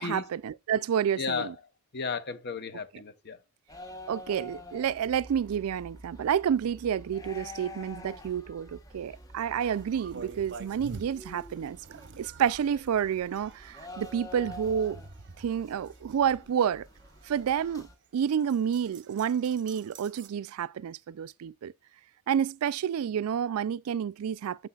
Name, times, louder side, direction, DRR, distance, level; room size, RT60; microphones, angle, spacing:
voice 1, 0.0-1.5 4.1-11.8 12.2-15.0 15.4-16.9 17.3-17.9 18.1-21.7 22.3-24.7, right 8 dB, 75° right, 0.3 m, -29 dB
voice 2, 1.2-1.6 1.9-3.4, left 5 dB, 50° left, 0.8 m, -34 dB
sound 1, 3.7-18.0, left 1 dB, 15° left, 1.0 m, -48 dB
sound 2, 9.6-20.3, right 4 dB, 55° right, 0.8 m, -49 dB
9.6 x 6.8 x 2.3 m
head